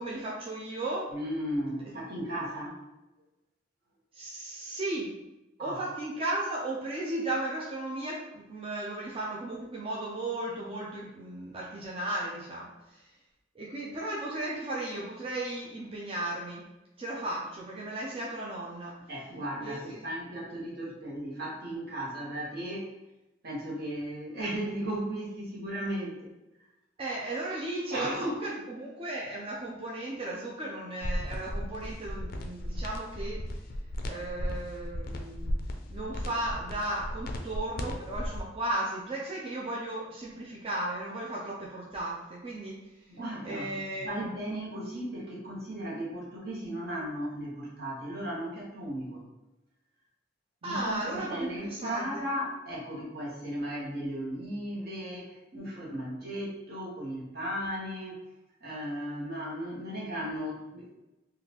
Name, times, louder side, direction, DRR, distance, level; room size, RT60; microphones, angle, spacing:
voice 1, 0.0-1.1 4.1-5.2 5.6-13.1 13.6-16.6 17.0-19.0 19.6-20.0 27.0-33.4 34.0-35.5 35.9-42.9 43.4-44.4 50.6-52.3, right 1 dB, 30° right, -4 dB, 0.4 m, -35 dB
voice 2, 1.1-2.8 5.6-5.8 19.1-22.9 23.4-26.3 27.9-28.4 43.1-49.2 50.6-58.2 58.6-60.9, equal, 55° right, -5 dB, 1.1 m, -36 dB
sound 1, 31.0-38.4, equal, 50° left, 0.4 m, -35 dB
3.7 x 2.4 x 2.8 m, 0.97 s
head